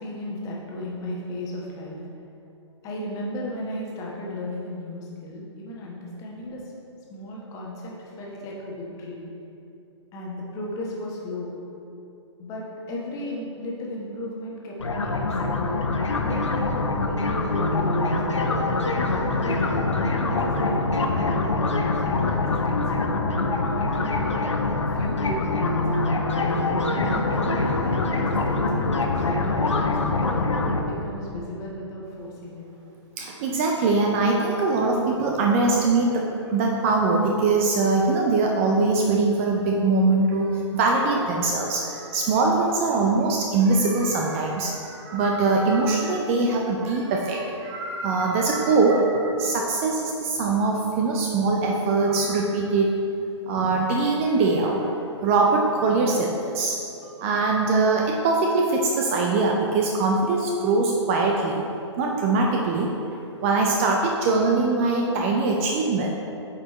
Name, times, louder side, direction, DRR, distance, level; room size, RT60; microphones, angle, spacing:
voice 1, 0.0-2.0 2.8-6.6 7.1-9.2 10.1-11.5 12.4-18.7 19.4-21.5 22.0-23.1 23.7-24.5 25.0-25.8 26.5-29.9 30.2-32.6, left 1 dB, 20° left, -3 dB, 1.2 m, -35 dB
sound 1, 14.8-30.8, left 3 dB, 75° left, 0.7 m, -24 dB
voice 2, 33.2-53.0 53.5-54.9 55.2-56.8 57.2-61.6 62.0-66.1, right 3 dB, 30° right, 0 dB, 0.5 m, -22 dB
8.3 x 4.7 x 3.1 m, 2.7 s
figure-of-eight pair, 120°, 15 cm